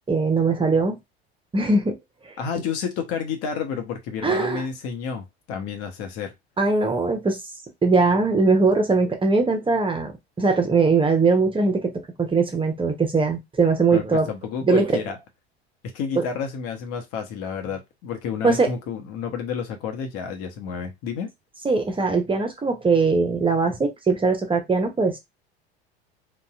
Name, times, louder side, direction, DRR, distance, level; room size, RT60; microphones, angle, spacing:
voice 1, 0.1-1.0 1.5-2.0 2.2-2.3 4.2-4.6 6.6-7.4 7.8-10.1 10.4-11.9 12.2-14.3 14.7-15.0 16.2-16.3 18.4-18.7 21.6-25.2, right 4 dB, 15° right, 0.8 m, -21 dB
voice 2, 2.4-6.3 13.9-15.2 15.9-21.3, left 7 dB, 50° left, 1.0 m, -30 dB
4.0 x 2.4 x 2.4 m
figure-of-eight pair, 75°, 32 cm